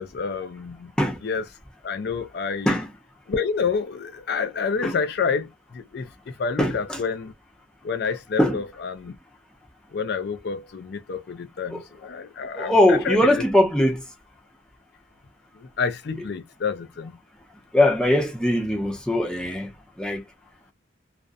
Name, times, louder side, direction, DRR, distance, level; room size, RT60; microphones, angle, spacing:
voice 1, 0.0-0.9 1.2-1.4 1.8-2.8 3.3-6.1 6.4-7.3 7.8-9.1 9.9-13.3 15.6-17.2, left 5 dB, 55° left, 0.4 m, -28 dB
voice 2, 6.6-7.0 8.4-8.6 11.7-11.8 12.6-14.0 17.7-19.7 20.0-20.2, left 1 dB, 5° left, 0.6 m, -21 dB
2.5 x 2.1 x 2.4 m
head